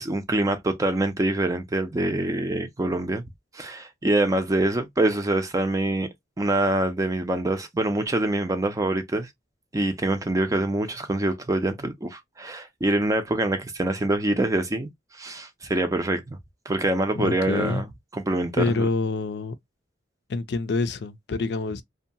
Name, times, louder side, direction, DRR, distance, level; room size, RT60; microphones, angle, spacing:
voice 1, 0.0-3.2 3.5-6.1 6.4-9.3 9.7-14.9 15.2-16.4 16.7-17.9 18.1-18.8, right 2 dB, 20° right, 0.5 m, -25 dB
voice 2, 17.2-17.8 18.6-19.5 20.3-21.8, left 3 dB, 65° left, 0.4 m, -26 dB
2.7 x 2.2 x 2.6 m
head